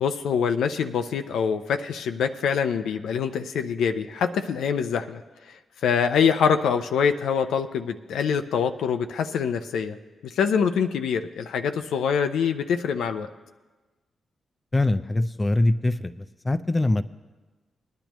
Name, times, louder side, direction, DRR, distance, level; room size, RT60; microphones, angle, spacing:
voice 1, 0.0-5.2 5.8-10.0 10.2-13.3, left 7 dB, 80° left, 7 dB, 0.5 m, -24 dB
voice 2, 14.7-17.0, left 2 dB, 25° left, 10 dB, 0.5 m, -23 dB
20.0 x 10.5 x 3.0 m, 1.2 s
supercardioid pair, 50°, 0 cm